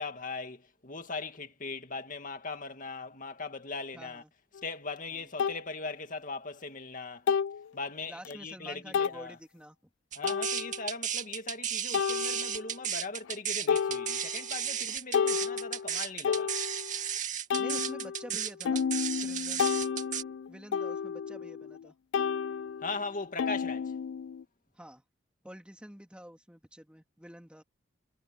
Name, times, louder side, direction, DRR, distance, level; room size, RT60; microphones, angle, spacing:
voice 1, 0.0-4.2 4.6-7.3 7.7-9.4 10.2-16.5 22.8-23.9, left 3 dB, 45° left, 2.2 m, -39 dB
voice 2, 3.9-4.3 5.1-5.3 8.1-9.8 17.6-18.8 19.2-19.6 20.5-21.9 24.7-25.0 25.4-27.6, equal, 5° right, 2.4 m, -48 dB
sound 1, 4.6-4.7 5.4-5.6 7.3-7.7 8.3-8.4 8.9-9.2 10.2-10.9 11.9-12.8 13.3-13.4 13.7-14.5 14.9-17.1 17.5-21.9 22.1-24.4, left 6 dB, 75° left, 0.3 m, -31 dB
sound 2, 10.1-20.2, right 9 dB, 40° right, 2.2 m, -34 dB
head